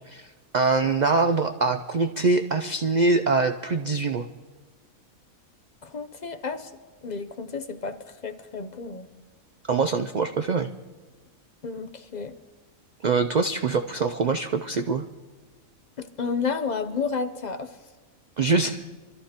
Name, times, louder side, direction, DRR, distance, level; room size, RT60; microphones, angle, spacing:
voice 1, 0.1-4.2 9.7-10.7 13.0-15.0 18.4-18.8, right 3 dB, 85° right, 8 dB, 0.3 m, -24 dB
voice 2, 5.8-6.7 7.0-9.1 11.6-12.4 16.0-17.8, left 5 dB, 45° left, 9 dB, 0.6 m, -31 dB
25.5 x 13.5 x 2.9 m, 1.4 s
omnidirectional pair, 1.4 m